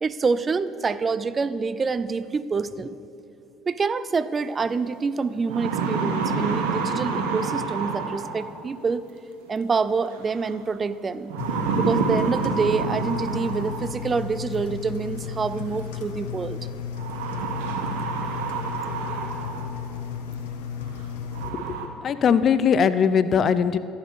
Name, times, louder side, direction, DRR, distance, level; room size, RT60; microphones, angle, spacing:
voice 1, 0.0-3.0 3.7-9.1 9.5-11.4 11.8-16.6, right 4 dB, 30° right, 15 dB, 0.5 m, -26 dB
sound 1, 4.7-4.8 5.3-8.7 10.1-10.5 11.3-14.1 15.4-15.5 17.0-19.8 20.3-20.4 21.0-21.1 21.3-21.9, right 4 dB, 75° right, 1.2 m, -28 dB
Engine, 11.4-21.5, left 7 dB, 75° left, 0.9 m, -34 dB
voice 2, 21.5-23.8, left 7 dB, 45° left, 14 dB, 0.6 m, -21 dB
13.5 x 8.8 x 6.8 m, 2.7 s
hypercardioid pair, 65°, 0 cm